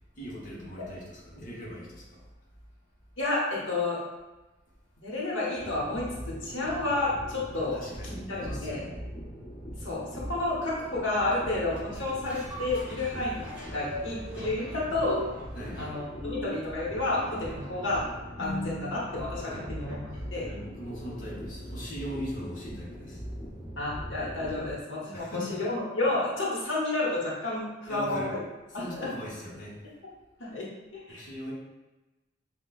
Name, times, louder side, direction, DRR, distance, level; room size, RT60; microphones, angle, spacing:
voice 1, 0.1-2.2 7.5-9.0 15.5-16.0 19.5-19.7 20.1-23.2 25.1-25.6 27.9-28.3 28.7-29.8 31.1-31.5, equal, 45° left, -6 dB, 1.0 m, -40 dB
voice 2, 3.2-4.0 5.0-7.8 8.1-8.9 9.8-13.5 13.7-15.2 15.8-18.0 18.4-20.0 20.3-20.5 23.8-28.4 28.7-29.1 30.4-31.2, left 2 dB, 90° left, -5 dB, 1.0 m, -31 dB
sound 1, 5.6-24.7, equal, 10° left, 0.9 m, -41 dB
sound 2, 11.7-20.3 20.7-20.8, left 1 dB, 10° right, 1.3 m, -41 dB
5.7 x 2.3 x 2.4 m, 1.1 s
head